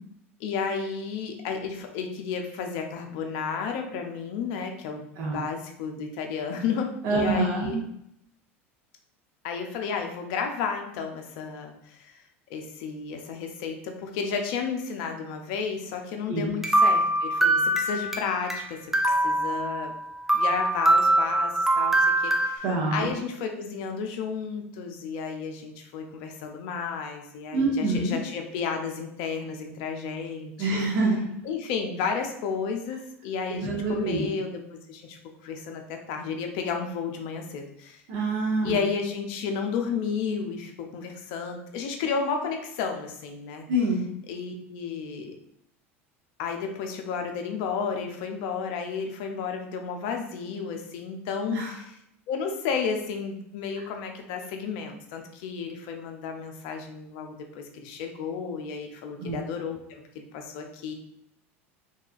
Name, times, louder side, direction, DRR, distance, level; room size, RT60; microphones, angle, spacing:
voice 1, 0.4-7.8 9.4-12.2 12.5-18.8 19.0-19.9 20.3-30.8 31.4-38.0 38.6-43.7 44.3-45.3 46.4-51.9 52.3-60.9, left 5 dB, 65° left, 4 dB, 0.5 m, -32 dB
voice 2, 5.2-5.5 7.0-7.7 16.3-16.5 22.6-23.1 27.5-28.2 30.6-31.3 33.5-34.3 38.1-38.8 43.7-44.1 51.5-51.7 53.8-53.9 59.2-59.4, right 2 dB, 60° right, -3 dB, 0.7 m, -26 dB
sound 1, 16.6-18.6 18.9-20.0 20.3-22.6, right 1 dB, 5° right, 0.4 m, -23 dB
2.7 x 2.3 x 2.4 m, 0.76 s
hypercardioid pair, 85°, 7 cm